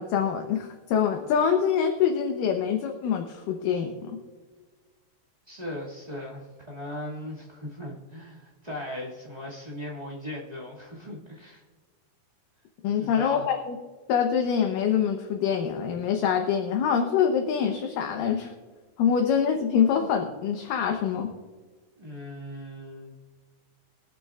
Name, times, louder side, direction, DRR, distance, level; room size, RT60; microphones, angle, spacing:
voice 1, 0.0-4.2 12.8-13.8 14.1-18.5 19.0-21.3, left 7 dB, 75° left, 3 dB, 2.5 m, -25 dB
voice 2, 5.5-11.6 13.0-13.5 22.0-23.1, left 1 dB, 15° right, -5 dB, 1.4 m, -38 dB
23.0 x 9.2 x 2.4 m, 1.4 s
omnidirectional pair, 4.1 m